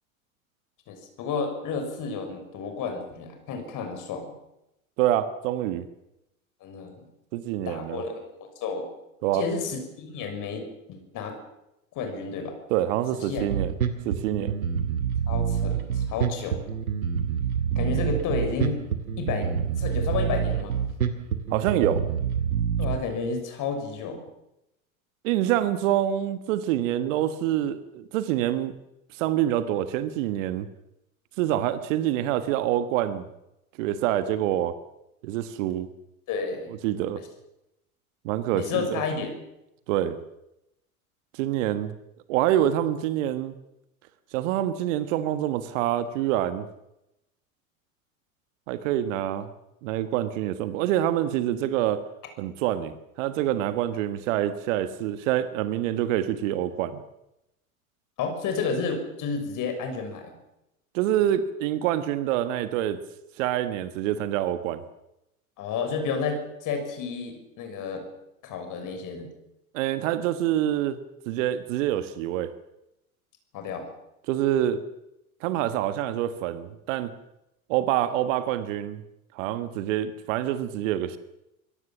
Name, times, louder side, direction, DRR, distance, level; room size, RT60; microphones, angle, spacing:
voice 1, 0.9-4.2 6.6-7.0 7.6-8.9 9.3-10.6 10.9-11.3 11.9-12.5 13.3-13.5 15.3-16.7 17.7-18.8 19.2-19.5 19.8-20.7 22.8-24.2 36.3-36.8 38.5-39.3 58.2-60.3 65.6-68.0 68.4-69.3 73.5-73.9, left 5 dB, 45° left, 6 dB, 6.4 m, -31 dB
voice 2, 5.0-5.9 7.3-8.0 9.2-9.4 12.7-13.7 14.0-14.6 21.5-22.0 25.2-28.7 29.1-30.7 31.4-33.3 33.8-34.7 35.2-35.9 36.8-37.2 38.2-39.0 39.9-40.2 41.3-42.0 42.3-43.5 44.3-46.7 48.7-49.5 49.8-52.1 52.4-57.0 60.9-63.0 63.4-64.8 69.7-71.0 71.2-72.5 74.3-74.8 75.4-77.1 77.7-79.0 79.3-81.2, right 12 dB, 60° right, 12 dB, 1.6 m, -26 dB
Bass guitar, 13.4-23.0, right 7 dB, 80° right, 2.4 m, -27 dB
24.5 x 17.5 x 7.4 m, 0.87 s
figure-of-eight pair, 80°, 42 cm